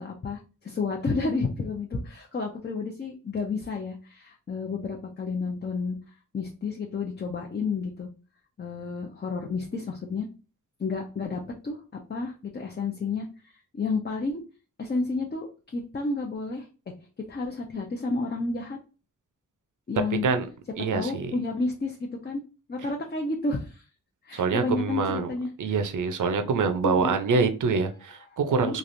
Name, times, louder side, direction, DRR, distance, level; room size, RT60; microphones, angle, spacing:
voice 1, 0.0-6.0 6.3-8.1 8.6-10.3 10.8-13.3 13.7-14.4 14.8-15.5 15.7-16.7 17.3-18.8 19.9-20.3 20.9-22.4 22.7-23.8 24.2-25.8 26.8-27.2 28.6-28.8, left 3 dB, 30° left, 1 dB, 0.6 m, -31 dB
voice 2, 20.8-21.3 24.3-25.3 25.6-28.8, right 4 dB, 65° right, 8 dB, 0.6 m, -25 dB
3.2 x 2.4 x 2.6 m, 0.34 s
cardioid pair, 75°, 33 cm